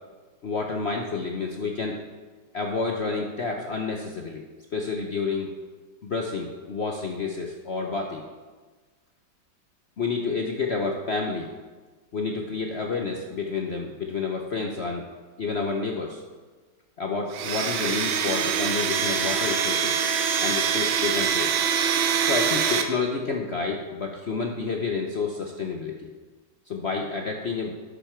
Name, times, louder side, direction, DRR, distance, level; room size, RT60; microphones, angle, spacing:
voice 1, 0.4-2.0 2.5-4.4 4.7-5.5 6.0-8.2 10.0-11.5 12.1-15.1 15.4-16.2 17.0-20.0 20.4-21.5 22.2-26.1 26.7-27.7, left 4 dB, 65° left, 1 dB, 0.6 m, -29 dB
Domestic sounds home sounds, 17.3-22.8, right 7 dB, 80° right, 1.6 m, -24 dB
12.0 x 6.8 x 4.5 m, 1.3 s
omnidirectional pair, 2.2 m